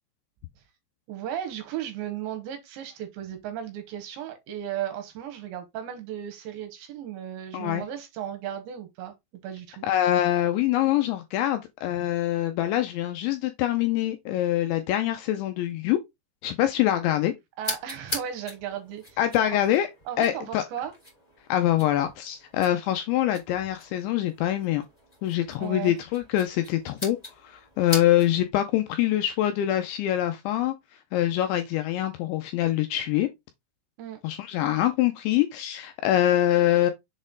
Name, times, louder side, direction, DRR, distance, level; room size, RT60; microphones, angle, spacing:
voice 1, 1.1-9.1 9.4-9.8 17.6-19.2 20.1-20.9 25.6-26.0 34.0-34.2, right 10 dB, 75° right, 3.1 m, -35 dB
voice 2, 7.5-7.8 9.8-16.0 16.4-17.3 19.2-19.9 20.2-20.6 21.5-24.8 25.2-27.2 27.4-30.7 31.1-33.3 34.2-36.9, left 13 dB, 80° left, 2.7 m, -24 dB
sound 1, 17.6-28.5, left 1 dB, 10° left, 2.2 m, -41 dB
7.1 x 4.3 x 3.8 m
omnidirectional pair, 5.9 m